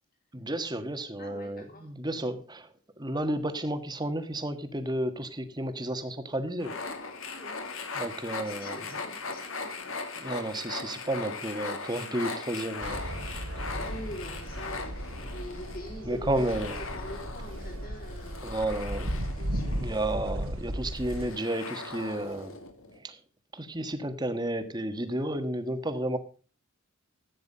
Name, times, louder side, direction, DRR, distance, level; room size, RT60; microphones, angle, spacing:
voice 1, 0.3-2.7 3.0-6.7 7.9-8.7 10.1-13.0 13.3-13.4 16.0-16.8 18.4-19.1 19.8-22.5 23.0-23.1 23.5-26.2, right 1 dB, 20° right, 9 dB, 1.4 m, -32 dB
voice 2, 1.2-1.9 2.2-2.3 7.2-7.9 8.3-9.8 13.8-18.6 19.4-19.9, left 1 dB, 45° left, 4 dB, 3.5 m, -44 dB
sound 1, 6.6-23.0, left 4 dB, 70° left, 2.3 m, -39 dB
sound 2, 12.8-21.3, equal, 85° right, 3.1 m, -36 dB
15.0 x 9.3 x 5.5 m, 0.37 s
head